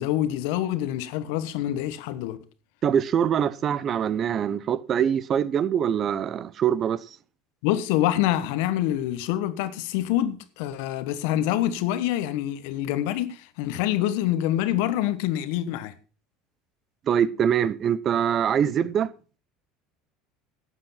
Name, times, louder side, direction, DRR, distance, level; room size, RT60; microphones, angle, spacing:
voice 1, 0.0-2.4 7.6-15.9, left 13 dB, 75° left, 1.3 m, -26 dB
voice 2, 2.8-7.0 17.1-19.1, right 8 dB, 40° right, 0.8 m, -23 dB
12.5 x 7.9 x 5.7 m
supercardioid pair, 100°, 0 cm